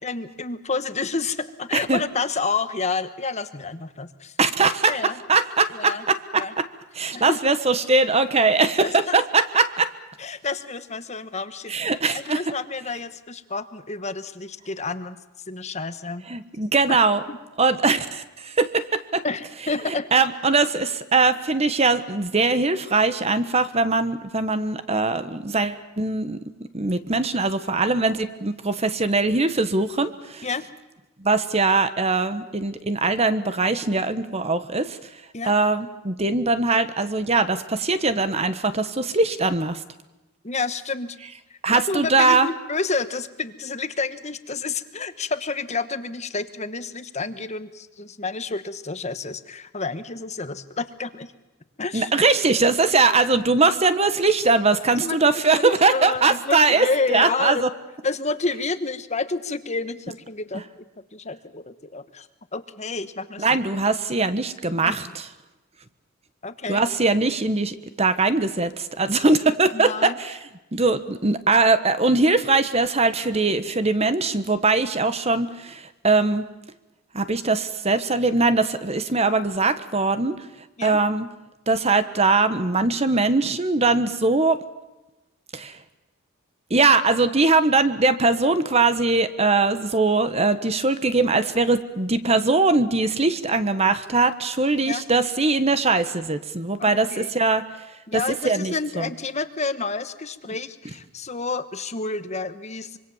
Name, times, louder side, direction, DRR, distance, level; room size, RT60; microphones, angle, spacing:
voice 1, 0.0-4.3 4.9-5.2 5.7-6.0 6.4-6.5 7.1-7.4 8.8-9.2 10.2-11.7 12.1-15.2 15.5-16.2 16.9-17.0 17.3-17.4 19.2-20.1 30.4-30.7 35.3-35.5 40.4-41.2 41.5-41.6 41.9-51.3 51.8-52.1 55.0-57.6 58.0-60.9 61.1-62.3 62.5-63.6 64.8-65.0 66.4-66.8 69.7-70.2 80.8-81.0 94.8-95.0 96.8-97.3 98.1-103.0, left 4 dB, 30° left, 11 dB, 1.2 m, -29 dB
voice 2, 4.4-6.6 7.0-9.9 11.7-12.4 16.3-17.2 17.6-19.2 20.1-26.4 26.7-30.5 31.2-35.0 35.4-39.8 41.6-42.5 51.9-57.7 63.4-65.3 66.7-70.4 70.7-76.4 77.1-80.3 80.8-81.3 81.7-84.6 85.5-85.8 86.7-97.6 98.1-99.1, right 3 dB, 30° right, 12 dB, 1.3 m, -21 dB
25.5 x 24.0 x 7.2 m, 1.0 s
head